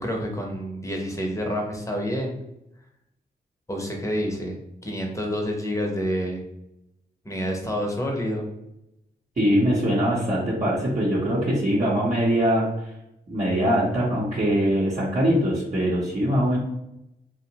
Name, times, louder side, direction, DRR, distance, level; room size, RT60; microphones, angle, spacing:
voice 1, 0.0-2.4 3.7-4.5 4.8-6.4 7.2-8.5, equal, 20° left, 1 dB, 0.8 m, -28 dB
voice 2, 9.4-12.9 13.3-16.6, equal, 45° right, -8 dB, 0.9 m, -22 dB
2.5 x 2.1 x 2.8 m, 0.85 s
cardioid pair, 55°, 17 cm